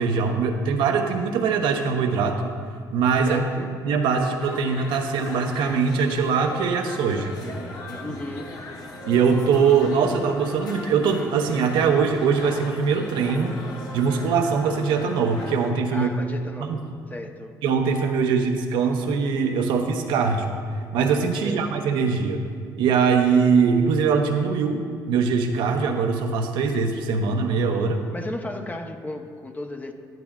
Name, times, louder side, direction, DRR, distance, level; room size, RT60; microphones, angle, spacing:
voice 1, 0.0-2.4 2.9-3.4 3.8-7.3 9.1-13.6 13.9-16.1 16.6-16.8 17.6-20.5 20.9-22.4 22.8-28.0, right 5 dB, 80° right, 4 dB, 0.8 m, -22 dB
voice 2, 3.3-3.7 8.0-8.6 15.9-17.5 21.4-21.6 28.1-29.9, left 1 dB, 20° left, 5 dB, 0.8 m, -35 dB
sound 1, 4.4-15.7, left 1 dB, 55° left, 1.4 m, -38 dB
11.0 x 10.5 x 2.4 m, 2.2 s
supercardioid pair, 80°, 8 cm